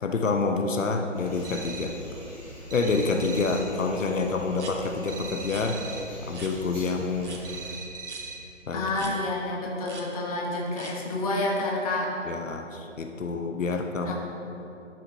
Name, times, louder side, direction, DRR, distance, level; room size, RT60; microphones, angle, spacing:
voice 1, 0.0-1.9 2.7-7.4 8.7-9.1 12.3-14.1, left 3 dB, 80° left, 4 dB, 0.8 m, -28 dB
sound 1, 1.1-7.8, equal, 10° right, 1.5 m, -44 dB
sound 2, 1.4-2.1 2.7-3.8 5.1-6.2 7.4-8.6, right 4 dB, 45° right, 1.1 m, -40 dB
sound 3, 4.5-4.7 5.4-5.7 6.3-6.5 7.2-7.4 8.0-8.2 8.9-9.1 9.8-10.0 10.7-10.9, right 4 dB, 65° right, 1.3 m, -42 dB
voice 2, 8.7-12.1 14.1-14.2, left 2 dB, 30° left, -2 dB, 1.2 m, -29 dB
11.5 x 6.4 x 2.8 m, 2.9 s
figure-of-eight pair, 150°, 38 cm